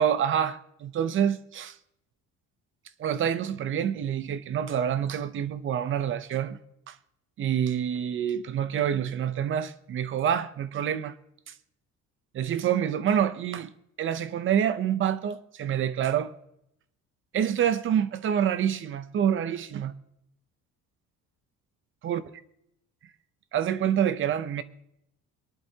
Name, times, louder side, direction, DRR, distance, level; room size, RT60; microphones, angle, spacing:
voice 1, 0.0-1.8 3.0-6.6 6.9-7.0 7.4-11.1 11.5-11.6 12.3-13.7 14.0-16.3 17.3-19.9 22.0-22.2 23.5-24.6, right 9 dB, 40° right, 0.7 m, -27 dB
23.5 x 11.0 x 2.8 m
cardioid pair, 165°, 31 cm